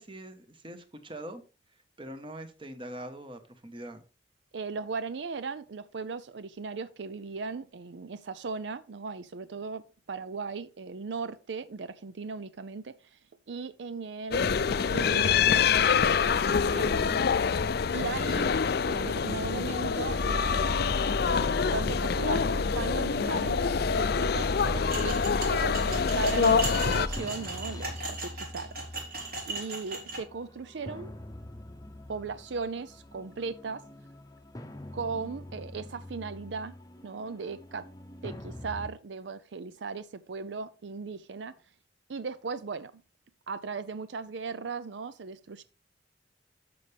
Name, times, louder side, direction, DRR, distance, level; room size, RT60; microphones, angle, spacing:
voice 1, 0.0-1.4 2.0-4.0, right 1 dB, 25° right, 1.3 m, -43 dB
voice 2, 4.5-13.2 13.5-15.7 16.7-17.3 17.9-18.5 18.9-20.8 21.3-29.0 29.5-31.1 32.1-33.8 34.9-36.7 37.0-37.9 38.2-41.5 42.1-42.9 43.5-45.6, right 4 dB, 70° right, 0.5 m, -37 dB
sound 1, 14.3-27.1, left 6 dB, 55° left, 0.4 m, -26 dB
sound 2, 20.1-38.9, left 1 dB, 20° left, 0.8 m, -38 dB
sound 3, 24.9-30.2, right 3 dB, 50° right, 4.2 m, -37 dB
11.5 x 6.9 x 3.4 m
head